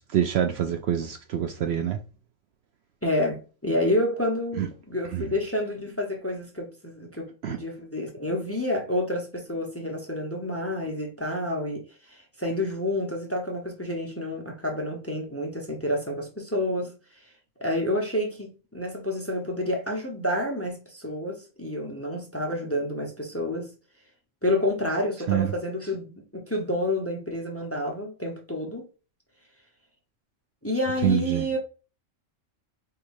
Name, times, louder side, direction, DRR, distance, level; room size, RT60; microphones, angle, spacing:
voice 1, 0.1-2.0 4.6-4.7 5.1-5.3 7.4-7.6 25.3-25.5 31.0-31.4, right 10 dB, 65° right, 0.7 m, -25 dB
voice 2, 3.0-16.9 17.2-17.3 17.6-23.7 24.4-28.9 30.6-31.6, left 1 dB, 15° left, 0.8 m, -29 dB
4.6 x 3.5 x 2.6 m
omnidirectional pair, 1.3 m